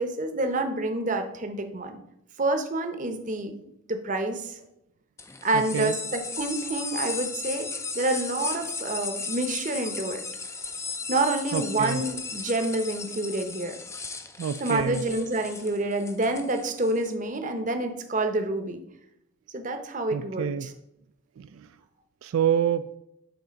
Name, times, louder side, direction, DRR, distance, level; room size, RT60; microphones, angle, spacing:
voice 1, 0.0-2.0 2.4-3.5 3.9-4.6 5.4-7.7 7.9-10.2 11.1-13.8 14.6-18.8 19.5-20.7, right 2 dB, 35° right, 6 dB, 0.8 m, -28 dB
sound 1, 5.2-17.1, left 4 dB, 15° left, 0.4 m, -36 dB
voice 2, 5.5-6.0 11.5-12.0 14.4-15.0 20.1-20.7 21.4-21.7 22.2-22.9, right 8 dB, 75° right, 11 dB, 0.3 m, -27 dB
8.0 x 3.9 x 5.1 m, 0.80 s
head